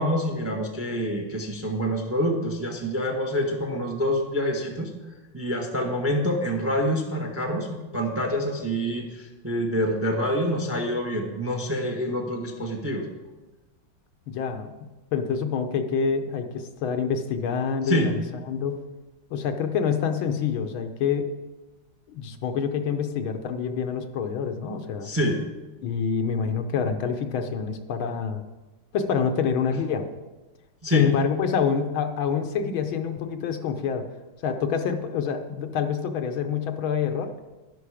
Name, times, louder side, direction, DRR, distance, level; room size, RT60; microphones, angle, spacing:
voice 1, 0.0-4.9 5.3-13.0 17.9-18.1 25.0-25.4 30.8-31.1, equal, 10° right, 2 dB, 0.9 m, -26 dB
voice 2, 14.3-18.2 18.5-18.8 19.3-21.3 22.1-25.1 25.8-28.4 28.9-30.1 30.9-34.0 34.4-37.3, left 6 dB, 75° left, 7 dB, 1.6 m, -27 dB
11.5 x 11.0 x 4.9 m, 1.2 s
omnidirectional pair, 2.3 m